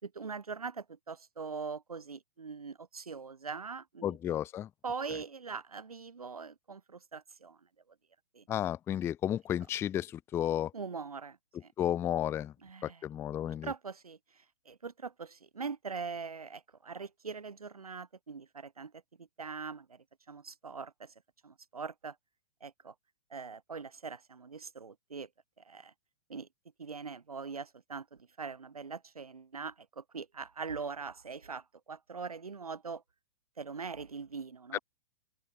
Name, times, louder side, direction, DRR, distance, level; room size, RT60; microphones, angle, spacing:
voice 1, 0.0-4.2 4.8-7.6 8.3-8.4 10.7-11.4 11.6-11.7 12.6-13.0 13.6-18.9 19.2-21.1 21.4-22.2 22.6-22.9 23.3-25.3 25.6-25.9 26.3-26.5 26.8-33.0 33.6-34.8, right 5 dB, 85° right, 2.9 m, -42 dB
voice 2, 4.0-4.7 8.5-10.7 11.8-12.5 12.8-13.7 34.7-34.8, left 11 dB, 15° left, 0.3 m, -32 dB
open air
hypercardioid pair, 115°, 18 cm